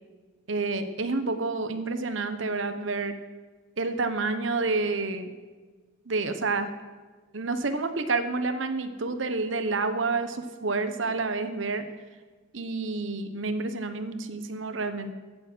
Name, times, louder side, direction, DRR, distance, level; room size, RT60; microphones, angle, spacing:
voice 1, 0.5-3.2 3.8-5.3 6.1-6.7 7.3-11.8 12.5-15.1, right 3 dB, 70° right, 9 dB, 1.0 m, -29 dB
16.0 x 7.5 x 6.2 m, 1.4 s
head